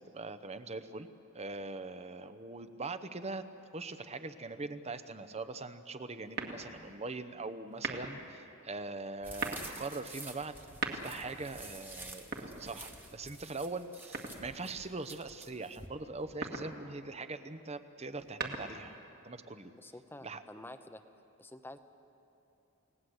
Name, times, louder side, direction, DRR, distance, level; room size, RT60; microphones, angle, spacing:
voice 1, 0.1-1.1 1.3-3.4 3.7-10.6 10.9-18.9 19.2-19.7 20.2-20.4, right 3 dB, 30° right, 11 dB, 0.9 m, -42 dB
sound 1, 6.3-6.9 7.7-8.3 9.2-9.7 10.6-11.4 12.2-13.1 14.1-14.8 16.2-16.8 18.1-19.0, right 4 dB, 50° right, 2.1 m, -39 dB
sound 2, 9.2-15.9, right 2 dB, 10° right, 1.4 m, -50 dB
voice 2, 19.7-21.0 21.4-21.8, left 1 dB, 10° left, 9 dB, 0.8 m, -49 dB
29.0 x 18.0 x 8.0 m, 2.9 s
head